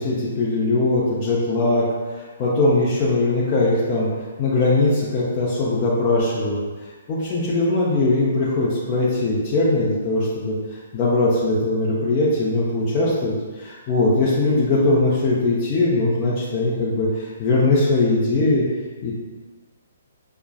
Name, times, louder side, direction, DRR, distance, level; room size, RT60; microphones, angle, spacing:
voice 1, 0.0-1.8 2.2-4.1 4.4-6.6 7.1-10.6 10.9-18.7 19.0-19.1, left 2 dB, 30° left, -8 dB, 0.6 m, -20 dB
5.4 x 2.3 x 2.3 m, 1.4 s
figure-of-eight pair, 125°, 0 cm